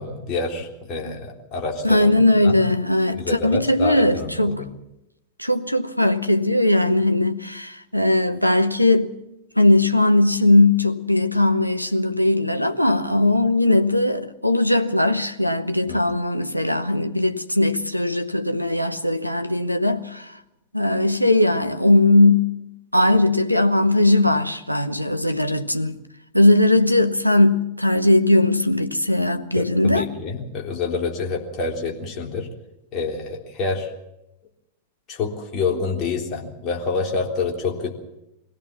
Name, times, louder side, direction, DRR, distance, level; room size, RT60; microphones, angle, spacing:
voice 1, 0.0-2.6 3.2-4.7 15.9-16.0 29.6-32.5 32.9-33.9 35.1-37.9, left 4 dB, 35° left, 3.6 m, -27 dB
voice 2, 1.8-4.6 5.4-9.1 9.6-20.3 20.7-22.5 22.9-25.9 26.3-30.1, left 2 dB, 90° left, 1.1 m, -19 dB
23.0 x 16.5 x 7.2 m
figure-of-eight pair, 90°, 0 cm